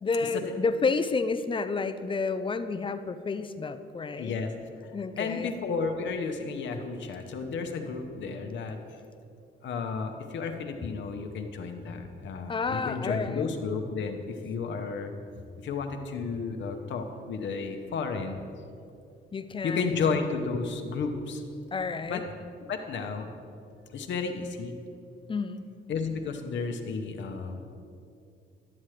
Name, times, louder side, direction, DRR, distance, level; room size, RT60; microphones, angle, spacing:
voice 1, 0.0-4.4 4.9-5.5 12.5-13.5 19.3-19.9 21.7-22.2 25.3-25.7, left 4 dB, 25° left, 10 dB, 0.4 m, -30 dB
voice 2, 4.2-4.5 5.2-8.8 9.6-15.1 15.6-18.4 19.6-21.4 22.1-22.2 22.7-23.3 23.9-24.7 25.9-27.7, left 5 dB, 65° left, 5 dB, 0.9 m, -32 dB
11.5 x 7.4 x 3.2 m, 2.5 s
cardioid pair, 90°, 20 cm